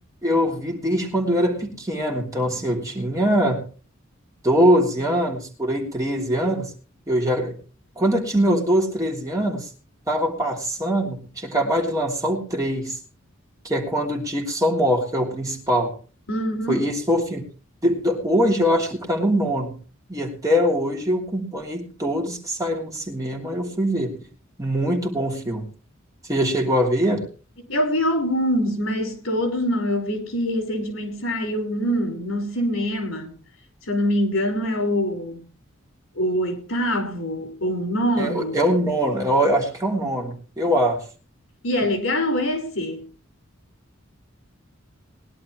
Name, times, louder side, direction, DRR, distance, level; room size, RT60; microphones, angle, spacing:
voice 1, 0.2-3.6 4.4-6.7 7.1-7.5 8.0-9.6 10.1-13.0 13.6-15.9 16.7-17.5 17.8-19.8 20.1-24.2 24.6-25.6 26.3-27.3 38.2-41.0, equal, 15° right, 3.1 m, -22 dB
voice 2, 16.3-16.9 27.7-33.3 33.8-35.5 36.1-38.6 41.6-43.0, equal, 80° left, 4.7 m, -24 dB
20.5 x 11.5 x 3.2 m
head